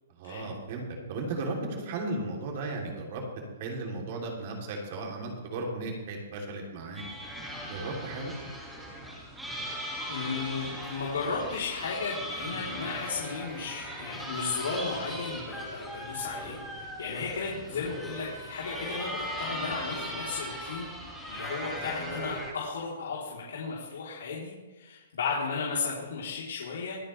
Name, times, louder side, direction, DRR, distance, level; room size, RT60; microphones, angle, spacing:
voice 1, 0.2-3.2 3.6-7.0 7.7-8.3, right 2 dB, 35° right, 0 dB, 3.1 m, -35 dB
sound 1, 6.9-22.5, equal, ahead, 2.0 m, -39 dB
voice 2, 10.1-20.9 21.3-27.0, left 5 dB, 80° left, -5 dB, 3.5 m, -34 dB
24.0 x 8.8 x 3.3 m, 1.3 s
hypercardioid pair, 170°, 0 cm